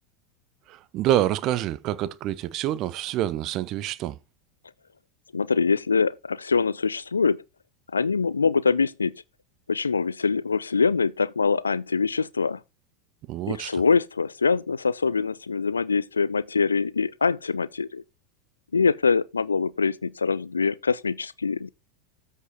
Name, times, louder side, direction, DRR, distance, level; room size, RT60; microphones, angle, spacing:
voice 1, 0.7-4.2 13.3-13.8, right 12 dB, 40° right, 0.7 m, -27 dB
voice 2, 5.3-7.4 7.9-9.1 9.7-12.6 13.5-18.0 18.7-21.7, left 5 dB, 80° left, 0.4 m, -24 dB
13.5 x 5.5 x 2.9 m
figure-of-eight pair, 85°, 0 cm